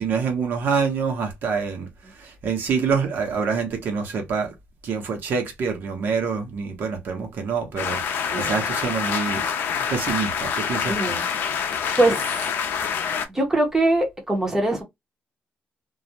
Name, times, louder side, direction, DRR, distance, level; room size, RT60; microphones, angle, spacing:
voice 1, 0.0-1.9 2.1-4.5 4.8-9.5 9.9-11.2, right 5 dB, 65° right, 0.8 m, -26 dB
sound 1, 7.8-13.2, left 7 dB, 70° left, 0.5 m, -26 dB
voice 2, 10.9-11.2 12.0-12.4 13.3-14.8, right 2 dB, 10° right, 0.6 m, -22 dB
2.3 x 2.0 x 2.7 m
wide cardioid pair, 170°, 4 cm